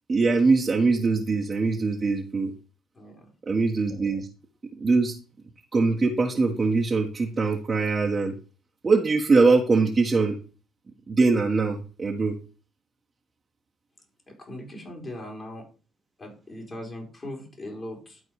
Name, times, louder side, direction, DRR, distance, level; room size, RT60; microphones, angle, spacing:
voice 1, 0.1-2.5 3.5-4.3 4.8-5.1 5.7-8.3 8.8-10.3 11.1-12.4, right 4 dB, 30° right, -2 dB, 1.5 m, -22 dB
voice 2, 2.9-3.3 14.3-15.6 16.2-18.2, left 1 dB, 30° left, -1 dB, 4.2 m, -39 dB
12.0 x 4.4 x 5.0 m, 0.37 s
hypercardioid pair, 55°, 0 cm